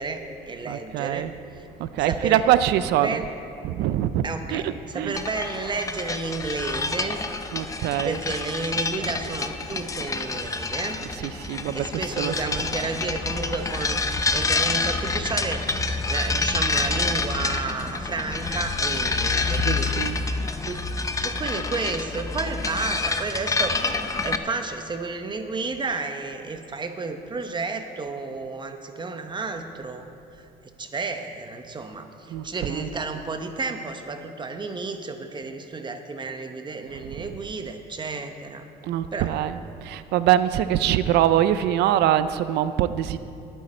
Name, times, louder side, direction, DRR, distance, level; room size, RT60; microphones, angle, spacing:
voice 1, 0.0-1.3 2.0-2.4 3.0-3.3 4.2-7.2 8.0-11.0 11.7-14.0 14.3-15.6 16.1-19.9 20.7-20.9 21.2-30.0 30.3-38.7 39.1-39.3, right 3 dB, 25° right, 7 dB, 0.9 m, -32 dB
voice 2, 0.7-1.3 1.8-3.2 3.6-5.2 7.5-8.2 11.0-12.6 14.2-14.3 19.5-20.2 32.3-32.9 36.9-37.4 38.8-43.2, right 12 dB, 80° right, 13 dB, 0.5 m, -24 dB
sound 1, 5.1-24.4, left 3 dB, 20° left, 0.7 m, -27 dB
19.0 x 9.3 x 4.3 m, 2.6 s
cardioid pair, 110°, 17 cm